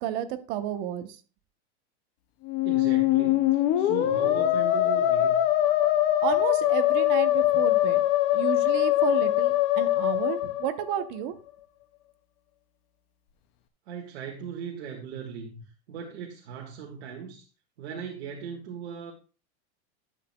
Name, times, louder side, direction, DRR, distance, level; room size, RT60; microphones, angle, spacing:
voice 1, 0.0-1.2 6.2-8.0 8.3-11.3, right 11 dB, 40° right, 10 dB, 0.9 m, -31 dB
Musical instrument, 2.4-11.2, left 14 dB, 20° left, 0.3 m, -23 dB
voice 2, 2.6-5.4 13.8-17.5 17.8-19.1, right 7 dB, 70° right, 0 dB, 1.7 m, -39 dB
11.5 x 7.8 x 2.2 m, 0.34 s
supercardioid pair, 160°, 35 cm